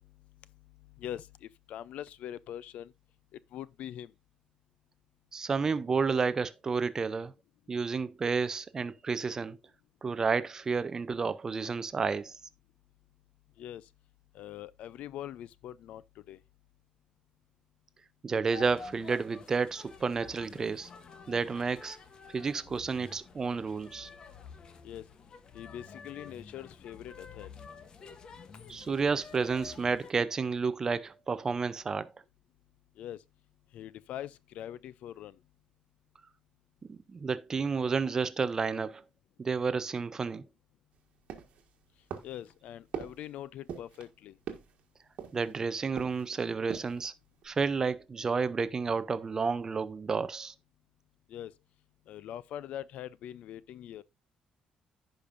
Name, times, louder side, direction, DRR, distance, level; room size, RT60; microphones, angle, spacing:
voice 1, 1.0-2.9 3.5-4.1 13.6-13.9 14.3-16.4 24.8-25.1 25.5-27.5 33.0-33.2 33.7-35.4 42.2-44.4 51.3-51.5 52.1-54.0, left 11 dB, 70° left, 0.4 m, -43 dB
voice 2, 5.3-7.3 7.7-9.6 10.0-12.3 18.2-20.9 21.3-22.0 22.3-24.1 28.7-32.1 36.9-39.0 39.4-40.5 45.3-47.1 47.4-50.5, right 5 dB, 25° right, 0.5 m, -31 dB
sound 1, 18.5-30.1, left 5 dB, 35° left, 0.9 m, -50 dB
sound 2, 41.3-41.7 42.1-42.5 42.9-43.3 43.7-44.1 44.5-44.8 45.2-45.6 46.0-46.3 46.6-47.0 47.4-47.5, right 8 dB, 60° right, 1.6 m, -41 dB
15.0 x 5.2 x 2.5 m
cardioid pair, 160°, 2 cm